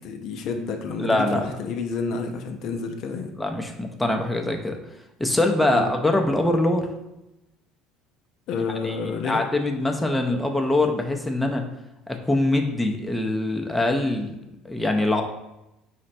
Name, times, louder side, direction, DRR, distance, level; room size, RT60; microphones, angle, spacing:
voice 1, 0.0-3.3 5.7-5.9 8.5-9.4, left 4 dB, 60° left, 4 dB, 0.4 m, -30 dB
voice 2, 1.0-1.4 3.4-4.8 5.2-6.9 8.8-9.0 9.2-11.6 12.1-14.3 14.6-15.2, left 2 dB, 5° left, 2 dB, 0.6 m, -23 dB
4.2 x 2.1 x 4.1 m, 0.91 s
hypercardioid pair, 80°, 0 cm